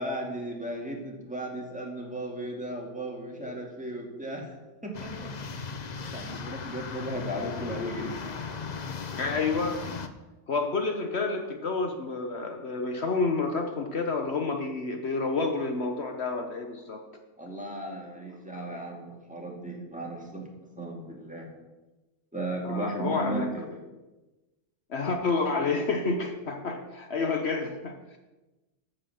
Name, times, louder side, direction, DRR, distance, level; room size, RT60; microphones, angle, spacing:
voice 1, 0.0-4.5 4.8-5.3 6.1-8.1 17.4-20.5 20.8-21.5 22.3-23.8, right 1 dB, 5° right, -1 dB, 2.1 m, -35 dB
sound 1, 4.9-10.1, left 5 dB, 40° left, 0.7 m, -37 dB
voice 2, 9.2-9.8 10.5-17.0 22.6-23.5 24.9-28.2, left 3 dB, 60° left, 4 dB, 1.2 m, -29 dB
14.0 x 5.6 x 7.0 m, 1.1 s
omnidirectional pair, 1.3 m